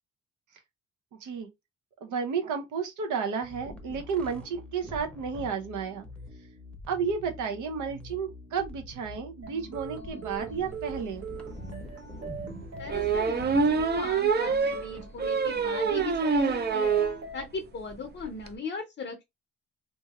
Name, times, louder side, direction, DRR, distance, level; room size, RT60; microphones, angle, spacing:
voice 1, 2.0-6.1 6.9-11.2, right 6 dB, 75° right, 0.8 m, -32 dB
sound 1, 3.4-14.1, left 1 dB, 5° left, 0.7 m, -44 dB
sound 2, 9.4-17.4, right 5 dB, 55° right, 1.0 m, -42 dB
sound 3, 11.1-11.2 11.6-11.7 12.9-17.2 17.6-17.7 17.9-18.0 18.2-18.5, right 5 dB, 35° right, 0.5 m, -26 dB
voice 2, 12.8-16.9 17.3-19.2, left 4 dB, 35° left, 0.6 m, -38 dB
2.9 x 2.6 x 2.3 m
cardioid pair, 90°, 30 cm